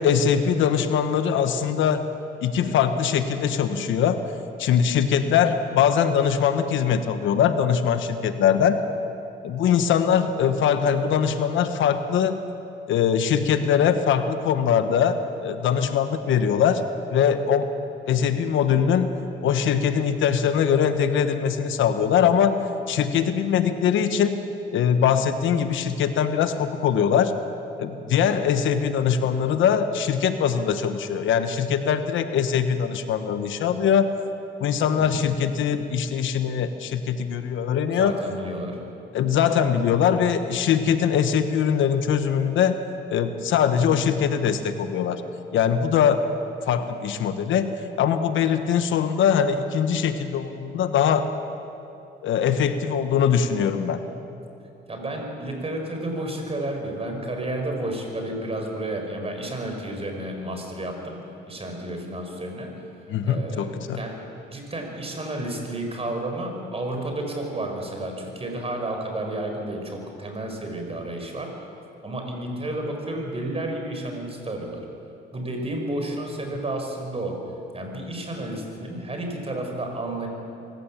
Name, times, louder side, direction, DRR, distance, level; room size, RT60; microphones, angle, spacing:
voice 1, 0.0-2.1 2.4-4.2 4.6-8.8 9.4-12.4 12.9-16.8 17.1-17.7 18.1-19.1 19.4-24.4 24.7-27.3 27.8-34.1 34.6-38.1 39.1-42.8 43.1-45.2 45.5-46.3 46.7-51.3 52.2-54.0 63.1-64.0, left 8 dB, 80° left, 9 dB, 1.2 m, -22 dB
voice 2, 34.9-35.3 37.9-38.8 54.9-62.7 63.2-71.7 72.0-74.8 75.3-80.3, right 1 dB, 30° right, 3 dB, 4.9 m, -31 dB
24.5 x 15.0 x 7.3 m, 2.8 s
cardioid pair, 90°, 20 cm